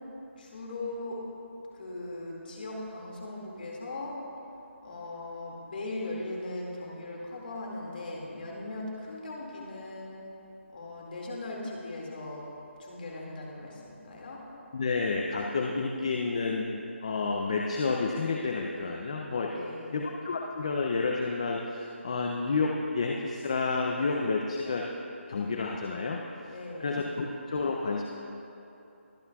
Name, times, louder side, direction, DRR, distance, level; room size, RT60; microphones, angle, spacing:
voice 1, 0.4-1.2 1.7-4.2 4.8-10.3 10.7-12.5 12.8-14.4 19.5-20.0 26.5-27.0, left 2 dB, 45° left, -2 dB, 2.1 m, -39 dB
voice 2, 14.7-19.6 19.9-24.9 25.3-26.2 26.8-28.0, left 4 dB, 30° left, 1 dB, 0.5 m, -30 dB
22.0 x 8.3 x 2.3 m, 2.8 s
hypercardioid pair, 170°, 7 cm